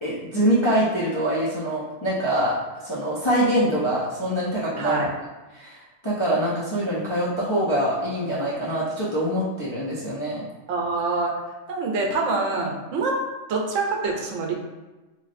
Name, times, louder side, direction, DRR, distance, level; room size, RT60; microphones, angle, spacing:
voice 1, 0.0-2.5 2.8-5.0 5.5-10.4, equal, 45° left, -9 dB, 0.3 m, -24 dB
voice 2, 4.8-5.1 10.7-11.3 11.7-13.2 13.5-14.5, right 3 dB, 85° right, 1 dB, 0.9 m, -25 dB
3.1 x 2.6 x 2.5 m, 1.2 s
omnidirectional pair, 1.3 m